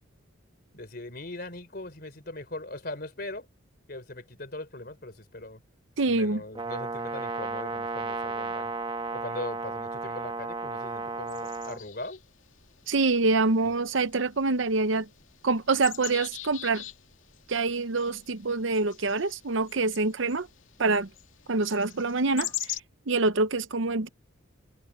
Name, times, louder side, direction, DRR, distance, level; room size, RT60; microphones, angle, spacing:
voice 1, 0.7-3.5 3.9-5.6 6.1-8.7 9.1-12.2 13.6-13.8, left 2 dB, 50° left, 3.7 m, -40 dB
voice 2, 6.0-6.4 12.9-15.1 15.4-16.8 17.5-20.5 20.8-21.1 21.5-22.5 23.1-24.1, right 3 dB, 70° right, 0.8 m, -25 dB
Brass instrument, 6.5-11.8, right 3 dB, 25° right, 1.3 m, -34 dB
sound 1, 11.3-22.8, left 13 dB, 75° left, 2.4 m, -43 dB
head